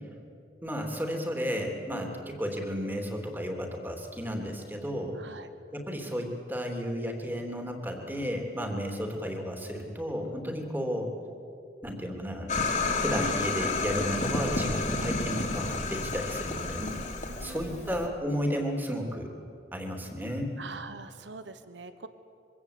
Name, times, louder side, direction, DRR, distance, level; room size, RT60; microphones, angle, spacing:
voice 1, 0.6-5.2 5.7-11.1 11.8-12.5 13.0-17.0 17.4-19.3 19.7-20.5, equal, 10° right, 2 dB, 3.2 m, -33 dB
voice 2, 5.1-5.5 17.2-18.1 20.6-22.1, right 4 dB, 85° right, 11 dB, 1.3 m, -44 dB
sound 1, 12.5-18.1, left 3 dB, 40° left, 3.1 m, -30 dB
24.5 x 24.5 x 8.6 m, 2.6 s
head